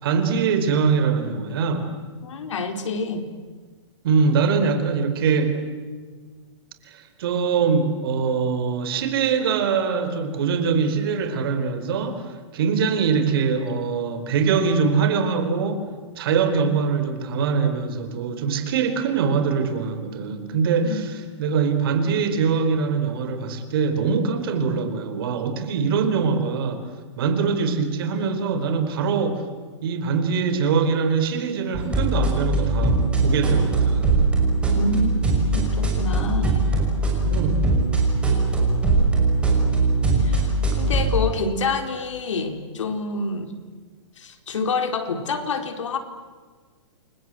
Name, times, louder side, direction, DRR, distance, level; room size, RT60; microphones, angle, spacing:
voice 1, 0.0-1.9 4.0-5.6 6.8-15.8 16.2-21.1 21.4-26.9 27.2-29.5 29.8-34.1 37.2-37.7, right 5 dB, 50° right, 8 dB, 4.5 m, -23 dB
voice 2, 2.2-3.3 20.8-21.0 34.7-35.2 35.5-36.6 40.2-43.5 44.2-46.0, left 3 dB, 85° left, 6 dB, 4.3 m, -27 dB
sound 1, 31.7-41.2, right 3 dB, 5° right, 5.7 m, -21 dB
29.5 x 24.5 x 7.9 m, 1.5 s
hypercardioid pair, 165°, 15 cm